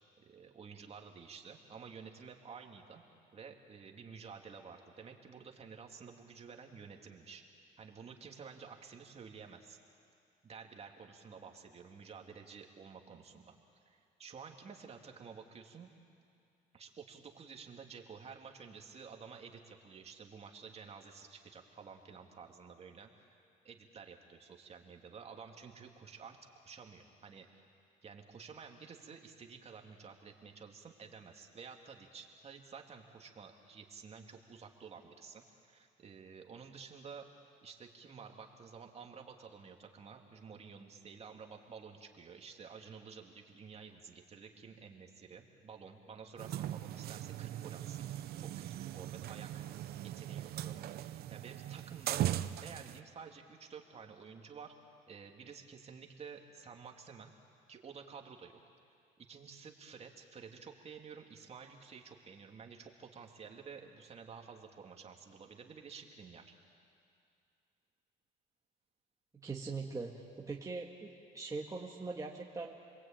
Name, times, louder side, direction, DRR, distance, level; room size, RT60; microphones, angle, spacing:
voice 1, 0.2-3.0 3.3-7.4 7.8-9.8 10.4-13.6 13.8-15.9 16.7-26.4 26.6-27.6 28.0-37.3 37.6-48.1 48.4-49.6 50.0-52.3 52.6-54.7 55.1-57.3 57.7-58.6 59.2-66.5, right 6 dB, 40° right, 2 dB, 2.7 m, -52 dB
sound 1, 46.4-53.0, right 12 dB, 65° right, 0.8 m, -39 dB
voice 2, 69.4-72.8, right 3 dB, 20° right, -2 dB, 2.1 m, -42 dB
29.5 x 21.5 x 9.0 m, 2.4 s
cardioid pair, 110°, 17 cm